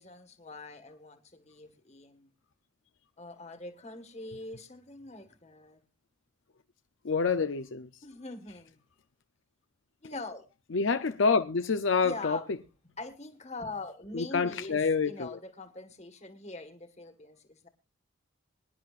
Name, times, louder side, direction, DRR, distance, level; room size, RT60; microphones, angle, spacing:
voice 1, 0.0-2.3 3.2-5.8 8.0-8.8 10.0-10.4 12.0-12.5 12.8-17.7, left 2 dB, 35° left, 1.6 m, -43 dB
voice 2, 7.0-7.9 10.7-12.4 14.1-15.3, left 5 dB, 70° left, 0.6 m, -27 dB
24.5 x 10.5 x 2.5 m
head